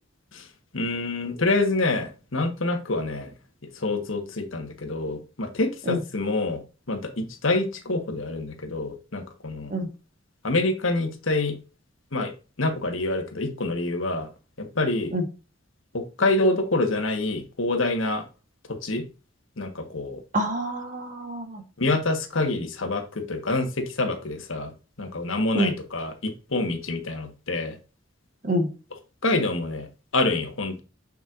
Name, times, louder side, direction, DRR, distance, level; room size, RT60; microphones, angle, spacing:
voice 1, 0.7-3.3 3.7-6.6 6.9-9.7 10.4-11.6 12.1-12.3 12.6-14.3 14.6-15.1 15.9-18.3 18.8-19.0 19.6-20.2 21.8-24.7 25.0-27.7 29.2-29.9 30.1-30.8, left 2 dB, 80° left, 6 dB, 1.6 m, -26 dB
voice 2, 20.3-21.6 25.5-25.7 28.4-28.7, right 1 dB, 40° right, 5 dB, 1.5 m, -26 dB
7.2 x 5.6 x 2.6 m, 0.32 s
head